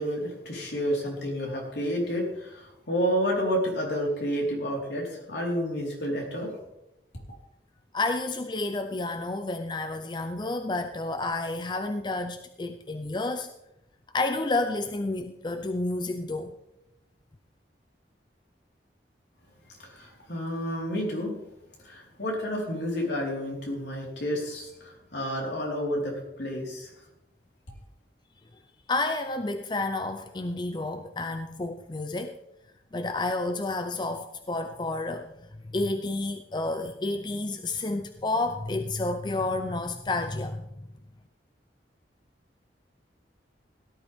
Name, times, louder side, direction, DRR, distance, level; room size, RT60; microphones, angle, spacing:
voice 1, 0.0-6.6 19.8-21.3 21.8-26.9, equal, 70° left, -2 dB, 4.3 m, -30 dB
voice 2, 7.9-13.5 14.1-16.6 28.9-32.4 32.9-35.3 35.6-40.7, left 2 dB, 25° left, 8 dB, 0.5 m, -30 dB
17.5 x 11.5 x 3.6 m, 0.86 s
head